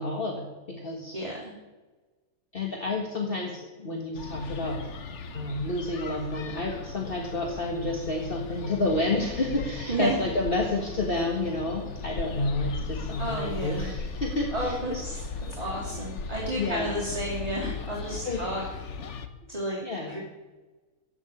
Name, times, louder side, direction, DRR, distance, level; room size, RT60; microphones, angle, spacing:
voice 1, 0.0-1.2 2.5-4.8 5.3-15.1 16.6-17.0 18.3-18.4 19.8-20.2, left 2 dB, 40° left, 1 dB, 1.9 m, -30 dB
voice 2, 1.1-1.5 9.9-10.2 13.2-13.9 14.5-15.2 15.6-18.6 19.5-19.8 20.1-20.2, right 1 dB, 25° right, -7 dB, 3.3 m, -32 dB
City Park ambience with light traffic, 4.1-19.3, left 4 dB, 55° left, 1.3 m, -37 dB
15.5 x 7.2 x 9.9 m, 1.2 s
omnidirectional pair, 1.6 m